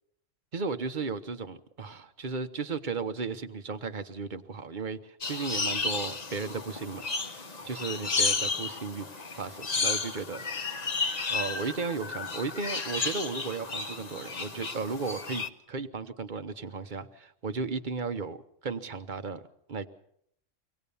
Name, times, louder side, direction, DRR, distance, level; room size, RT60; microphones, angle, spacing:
voice 1, 0.5-7.0 7.3-9.1 9.3-10.4 11.1-18.4 18.6-19.4 19.7-19.9, right 4 dB, 40° right, 11 dB, 1.1 m, -35 dB
sound 1, 5.2-15.5, left 4 dB, 35° left, 1.1 m, -32 dB
25.0 x 18.5 x 7.0 m, 0.70 s
omnidirectional pair, 1.3 m